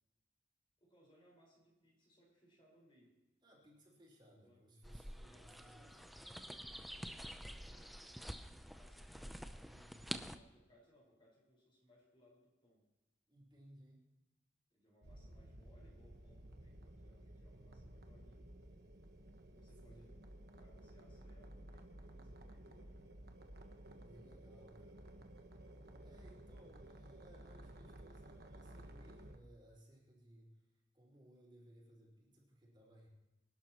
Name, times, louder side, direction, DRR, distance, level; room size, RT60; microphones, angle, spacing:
voice 1, 0.8-3.1 4.2-4.6 5.2-9.5 10.3-12.8 14.7-18.5 19.5-20.1 20.5-23.0, equal, 30° left, -3 dB, 4.9 m, -69 dB
voice 2, 3.4-6.0 9.7-10.3 13.3-14.0 19.8-20.1 24.0-25.2 26.0-30.7 30.9-33.1, equal, 25° right, -4 dB, 4.8 m, -63 dB
sound 1, 4.8-10.4, equal, ahead, 0.6 m, -48 dB
sound 2, 15.0-29.4, right 1 dB, 60° right, 1.3 m, -55 dB
26.0 x 11.5 x 3.0 m, 1.0 s
head